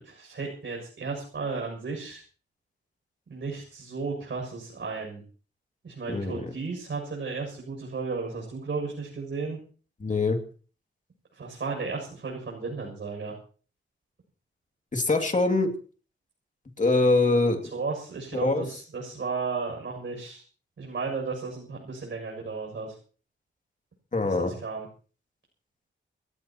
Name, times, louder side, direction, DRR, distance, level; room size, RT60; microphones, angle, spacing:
voice 1, 0.0-2.2 3.3-5.2 5.8-9.6 11.3-13.4 15.2-15.3 17.7-20.4 20.8-22.9 24.2-24.9, right 4 dB, 65° right, -1 dB, 7.4 m, -34 dB
voice 2, 6.1-6.5 10.0-10.4 14.9-15.7 16.8-17.7 18.3-18.6 24.1-24.5, left 3 dB, 40° left, 3 dB, 2.5 m, -24 dB
29.0 x 16.5 x 3.0 m, 0.42 s
wide cardioid pair, 160°, 21 cm